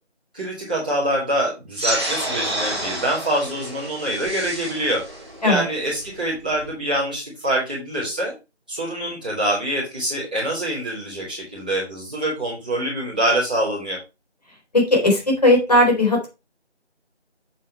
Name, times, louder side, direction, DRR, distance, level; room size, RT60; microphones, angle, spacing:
voice 1, 0.3-5.0 5.4-8.3 8.7-14.0, right 1 dB, 5° right, -10 dB, 2.0 m, -25 dB
sound 1, 1.7-6.7, right 1 dB, 25° right, 2.2 m, -30 dB
voice 2, 14.7-16.3, left 1 dB, 35° left, 1 dB, 3.6 m, -17 dB
7.4 x 5.1 x 4.4 m, 0.27 s
figure-of-eight pair, 175°, 35 cm